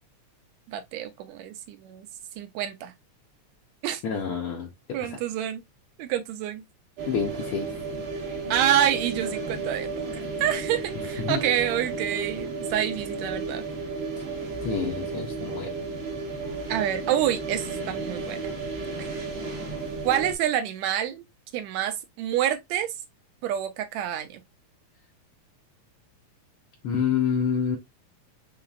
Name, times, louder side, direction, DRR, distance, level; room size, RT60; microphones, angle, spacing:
voice 1, 0.7-2.1 2.4-2.9 3.8-4.0 4.9-5.6 6.0-6.6 8.5-9.9 10.4-13.6 16.7-18.4 19.0-19.1 20.0-21.2 21.5-22.9 23.4-24.4, right 10 dB, 80° right, 1.7 m, -27 dB
voice 2, 4.0-5.2 7.1-7.7 11.2-11.4 14.6-15.7 26.8-27.8, left 7 dB, 75° left, 1.2 m, -28 dB
sound 1, 7.0-20.3, right 3 dB, 50° right, 1.2 m, -33 dB
5.7 x 3.2 x 2.3 m
omnidirectional pair, 3.5 m